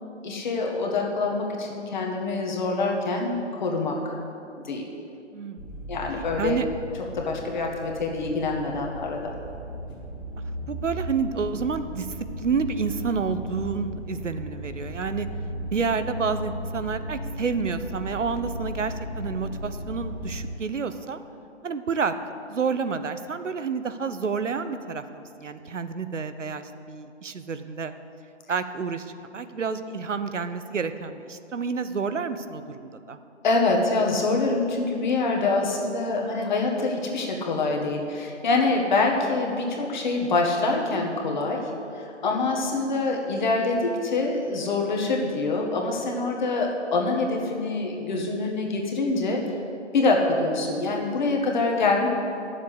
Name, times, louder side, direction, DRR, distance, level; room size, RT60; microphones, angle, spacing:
voice 1, 0.2-4.0 4.7-4.9 5.9-6.6 7.1-9.3 33.4-41.6 41.9-49.4 49.9-52.1, left 3 dB, 40° left, 0 dB, 1.7 m, -25 dB
voice 2, 5.3-5.9 6.4-6.7 10.7-12.1 12.4-15.3 15.7-21.2 21.6-22.1 22.5-27.9 28.5-33.2, right 5 dB, 85° right, 11 dB, 0.8 m, -29 dB
sound 1, 5.6-20.5, equal, 20° left, 2.3 m, -36 dB
9.5 x 7.4 x 8.1 m, 2.6 s
figure-of-eight pair, 150°, 36 cm